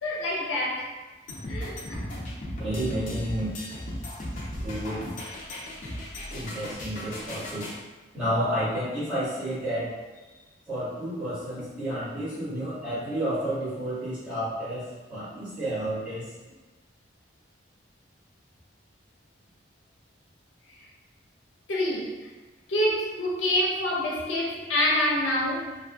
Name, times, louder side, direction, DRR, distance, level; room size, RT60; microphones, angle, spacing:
voice 1, 0.0-0.9 1.5-2.3 21.7-22.3 22.7-25.8, left 1 dB, 90° left, -3 dB, 0.6 m, -27 dB
sound 1, 1.3-7.8, left 1 dB, 40° left, 0.5 m, -36 dB
voice 2, 2.6-3.6 4.6-5.0 6.3-7.7 8.1-9.9 10.7-16.2, right 1 dB, 5° right, -16 dB, 1.5 m, -31 dB
2.7 x 2.5 x 2.3 m, 1.2 s
head